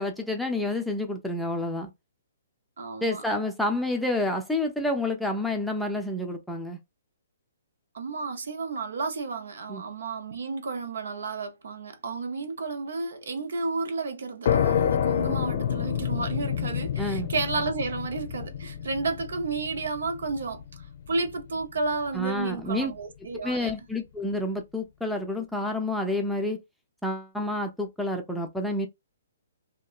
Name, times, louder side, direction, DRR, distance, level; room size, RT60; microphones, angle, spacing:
voice 1, 0.0-1.9 3.0-6.8 9.7-9.8 17.0-17.3 22.1-22.9 23.4-26.6 27.0-28.9, left 1 dB, ahead, 0.5 m, -29 dB
voice 2, 2.8-3.2 7.9-20.6 21.1-23.7, right 4 dB, 70° right, 0.6 m, -32 dB
sound 1, 14.4-21.8, left 9 dB, 55° left, 0.5 m, -28 dB
2.7 x 2.2 x 2.3 m
hypercardioid pair, 135°, 0 cm